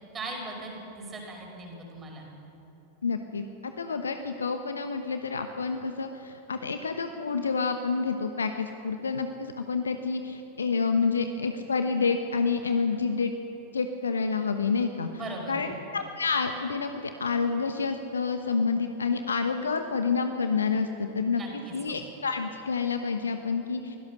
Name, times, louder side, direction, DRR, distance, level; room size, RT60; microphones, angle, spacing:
voice 1, 0.1-2.3 15.1-15.7 21.3-22.0, right 2 dB, 20° right, 0 dB, 5.6 m, -39 dB
voice 2, 3.0-13.3 13.7-15.1 15.5-21.4 21.7-24.0, left 5 dB, 75° left, 7 dB, 1.0 m, -28 dB
24.0 x 17.0 x 6.5 m, 2.9 s
figure-of-eight pair, 90°, 0 cm